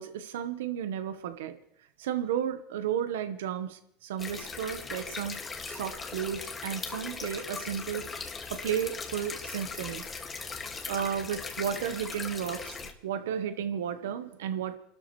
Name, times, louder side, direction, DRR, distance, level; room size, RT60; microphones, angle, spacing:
voice 1, 0.0-1.5 2.0-5.4 5.7-8.0 8.5-10.0 10.9-14.8, right 9 dB, 85° right, 9 dB, 1.1 m, -33 dB
sound 1, 4.2-12.9, left 4 dB, 25° left, 2.1 m, -39 dB
29.0 x 13.0 x 3.2 m, 0.74 s
supercardioid pair, 105°, 0 cm